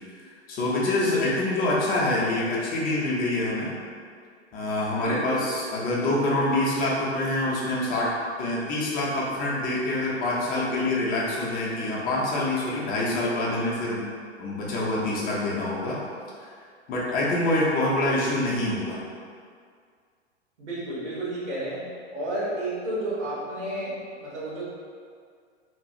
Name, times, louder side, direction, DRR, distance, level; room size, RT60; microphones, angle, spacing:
voice 1, 0.5-3.7 4.5-14.0 14.4-16.0 16.4-16.5 16.9-19.0, left 1 dB, 25° left, -5 dB, 0.7 m, -26 dB
voice 2, 5.0-5.5 6.0-6.1 20.6-21.8 22.1-24.6, right 1 dB, 85° right, -8 dB, 1.3 m, -31 dB
2.9 x 2.3 x 2.7 m, 2.1 s
hypercardioid pair, 105°, 34 cm